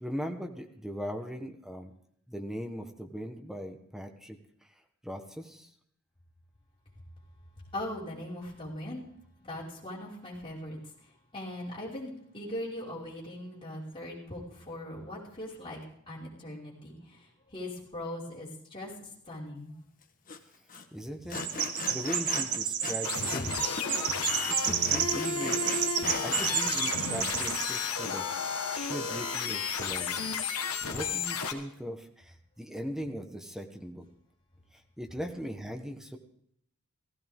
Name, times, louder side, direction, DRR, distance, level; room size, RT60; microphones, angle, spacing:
voice 1, 0.0-1.9 2.3-4.4 5.0-5.7 20.9-21.4 21.9-23.7 24.6-25.8 26.2-30.5 30.8-34.0 35.0-36.2, equal, ahead, 4 dB, 1.2 m, -39 dB
voice 2, 7.7-9.0 9.4-10.8 11.3-15.8 16.1-17.0 17.5-18.9 19.3-19.7, left 1 dB, 25° left, -7 dB, 5.2 m, -40 dB
Sawing, 20.3-20.4 20.7-20.8 21.3-23.5 23.8-26.6, left 4 dB, 40° left, 1.3 m, -38 dB
Chirp tweet, 21.3-27.9, right 8 dB, 90° right, 1.4 m, -31 dB
sound 1, 23.0-31.5, left 5 dB, 75° left, 1.5 m, -33 dB
16.5 x 15.5 x 3.7 m, 0.69 s
head